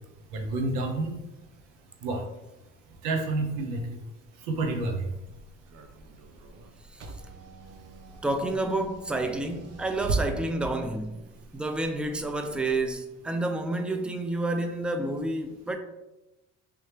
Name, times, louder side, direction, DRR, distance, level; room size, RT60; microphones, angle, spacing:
voice 1, 0.3-1.2 2.0-2.2 3.0-4.0 4.5-5.0, right 2 dB, 85° right, 0.7 m, -29 dB
Car / Engine, 4.6-12.9, right 4 dB, 40° right, 0.6 m, -39 dB
voice 2, 8.2-15.8, right 2 dB, 5° right, 0.4 m, -29 dB
3.5 x 2.7 x 3.2 m
supercardioid pair, 60°, 37 cm